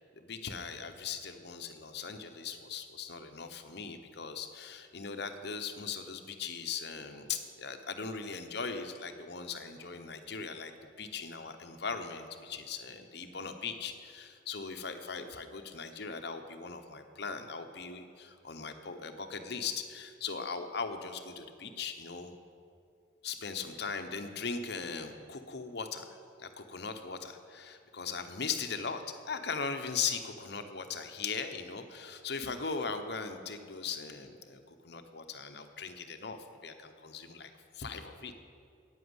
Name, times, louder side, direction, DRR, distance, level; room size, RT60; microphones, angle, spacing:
voice 1, 0.2-10.7 11.0-22.3 23.2-38.4, left 5 dB, 60° left, 7 dB, 1.0 m, -39 dB
10.5 x 9.2 x 8.0 m, 2.3 s
head